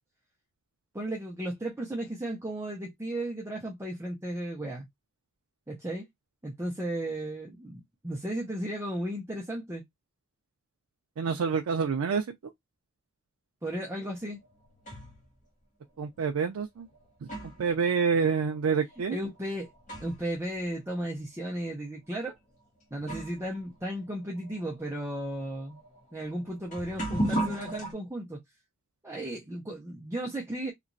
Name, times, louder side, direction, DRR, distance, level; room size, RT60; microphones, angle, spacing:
voice 1, 0.9-4.9 5.7-6.1 6.4-9.8 13.6-14.4 19.1-19.7 20.0-22.3 22.9-25.8 26.1-28.4 29.0-30.7, right 1 dB, 10° right, 0.6 m, -35 dB
voice 2, 11.2-12.4 16.0-16.9 17.2-19.2, right 5 dB, 75° right, 0.4 m, -28 dB
sound 1, 14.2-15.3 16.2-16.3 16.9-20.4 20.7-20.8 21.6-21.7 22.5-22.6 23.0-27.9, right 1 dB, 35° left, 1.2 m, -37 dB
3.0 x 2.4 x 2.5 m
head